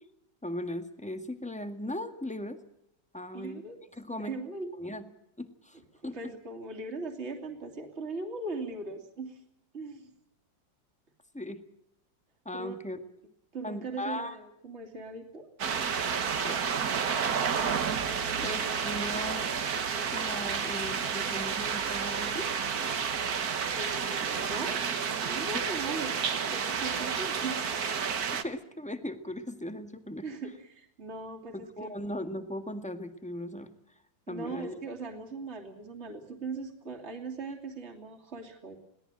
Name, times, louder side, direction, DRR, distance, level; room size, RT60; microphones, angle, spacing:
voice 1, 0.4-2.6 3.1-3.6 4.0-4.3 4.8-5.1 5.4-6.2 11.3-11.6 12.4-13.0 13.6-14.4 16.4-16.6 18.4-19.5 20.1-22.5 25.5-25.6 28.4-30.2 31.5-33.7 34.3-34.7, left 1 dB, 5° left, 8 dB, 1.6 m, -38 dB
voice 2, 3.3-3.8 4.1-4.7 6.0-9.4 9.7-10.1 12.5-12.8 13.5-15.5 18.3-18.5 23.8-24.8 25.2-27.9 30.2-31.9 34.3-38.8, right 3 dB, 35° right, 3 dB, 3.1 m, -39 dB
sound 1, 15.6-28.4, right 6 dB, 55° right, 1.8 m, -30 dB
22.5 x 17.5 x 9.0 m, 0.77 s
omnidirectional pair, 2.0 m